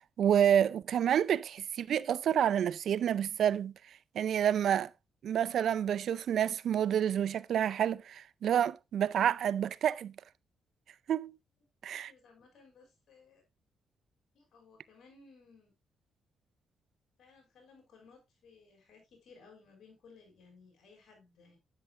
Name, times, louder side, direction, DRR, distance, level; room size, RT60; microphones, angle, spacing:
voice 1, 0.0-3.7 4.1-4.9 5.2-10.1 11.1-11.3 11.8-12.1, right 9 dB, 70° right, 0.5 m, -29 dB
voice 2, 11.9-13.4 14.3-15.7 17.2-21.6, left 4 dB, 70° left, 6.2 m, -59 dB
10.0 x 10.0 x 2.5 m
supercardioid pair, 60°, 0 cm